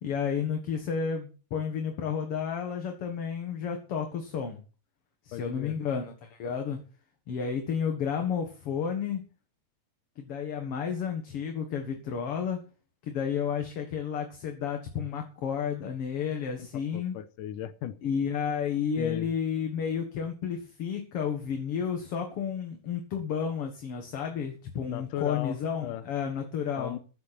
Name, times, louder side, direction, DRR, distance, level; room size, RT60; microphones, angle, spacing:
voice 1, 0.0-4.6 5.2-6.8 7.3-9.2 10.2-12.6 13.0-17.2 18.0-27.0, left 7 dB, 50° left, 2.2 m, -31 dB
voice 2, 5.3-5.8 16.9-18.0 19.0-19.3 24.9-26.0 26.8-27.0, left 12 dB, 85° left, 2.4 m, -36 dB
22.0 x 7.7 x 4.3 m
omnidirectional pair, 3.7 m